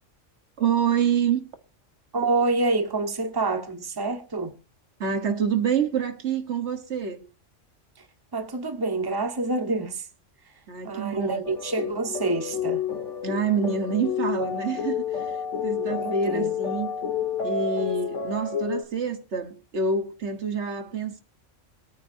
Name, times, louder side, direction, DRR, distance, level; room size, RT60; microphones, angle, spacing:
voice 1, 0.6-1.4 5.0-7.2 10.7-11.4 13.2-15.4 15.6-16.9 17.4-21.2, right 6 dB, 65° right, 1.5 m, -27 dB
voice 2, 2.1-4.5 8.3-10.1 10.8-12.8 15.7-16.5, right 3 dB, 20° right, 1.2 m, -27 dB
sound 1, 11.4-18.8, left 7 dB, 75° left, 1.8 m, -30 dB
23.0 x 9.2 x 2.6 m
omnidirectional pair, 1.3 m